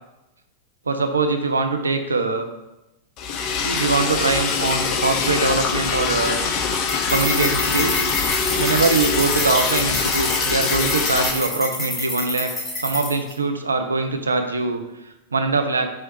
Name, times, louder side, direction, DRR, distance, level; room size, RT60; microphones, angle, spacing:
voice 1, 0.9-2.5 3.6-6.4 7.1-8.0 8.6-12.5 12.8-16.0, right 3 dB, 75° right, 6 dB, 0.4 m, -22 dB
Liquid, 3.2-11.3, left 5 dB, 40° left, 0.5 m, -23 dB
sound 1, 6.9-13.3, left 2 dB, 15° left, 1.2 m, -27 dB
4.6 x 3.0 x 3.1 m, 0.98 s
figure-of-eight pair, 90°, 0 cm